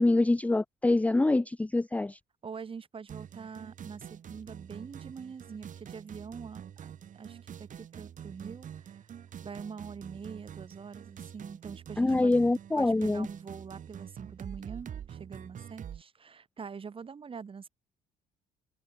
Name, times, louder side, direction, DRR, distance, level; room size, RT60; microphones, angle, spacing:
voice 1, 0.0-2.2 12.0-13.3, left 2 dB, 10° left, 0.6 m, -25 dB
voice 2, 2.4-9.1 9.4-12.4 12.7-17.7, right 6 dB, 30° right, 3.8 m, -44 dB
sound 1, 3.1-16.0, right 9 dB, 50° right, 6.7 m, -46 dB
cardioid pair, 110°, 17 cm